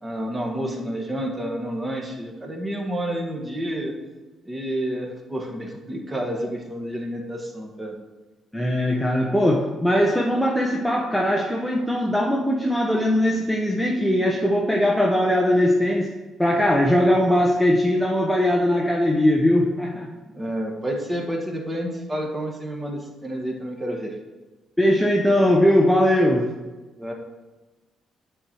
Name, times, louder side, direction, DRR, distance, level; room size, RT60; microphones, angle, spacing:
voice 1, 0.0-3.9 4.4-7.9 20.3-24.1 27.0-27.1, right 1 dB, 15° right, 1 dB, 1.5 m, -29 dB
voice 2, 8.5-16.1 16.4-20.1 24.8-26.5, left 1 dB, 5° left, -1 dB, 0.8 m, -20 dB
9.8 x 4.4 x 6.2 m, 1.2 s
cardioid pair, 145°, 0 cm